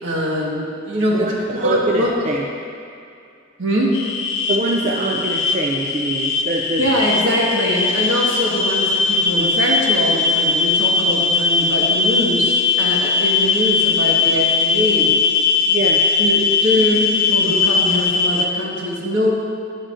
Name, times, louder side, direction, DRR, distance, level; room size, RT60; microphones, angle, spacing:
voice 1, 0.0-1.3 1.6-2.1 3.6-3.9 6.8-15.1 15.6-15.8 16.2-19.3, equal, 70° right, -4 dB, 1.5 m, -22 dB
voice 2, 1.1-2.4 4.5-6.8 15.7-16.1, right 2 dB, 40° right, -2 dB, 0.4 m, -23 dB
sound 1, 3.9-18.5, left 4 dB, 80° left, 0.5 m, -19 dB
10.0 x 7.4 x 2.5 m, 2.4 s
head